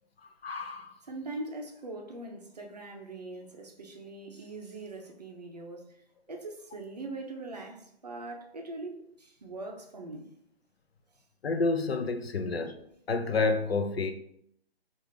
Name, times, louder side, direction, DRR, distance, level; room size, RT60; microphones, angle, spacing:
voice 1, 0.4-0.9 11.4-12.7 13.1-14.1, left 3 dB, 70° left, 0.5 m, -29 dB
voice 2, 1.1-5.9 6.3-10.3, right 2 dB, 40° right, 0.5 m, -41 dB
3.5 x 2.4 x 3.2 m
figure-of-eight pair, 140°, 32 cm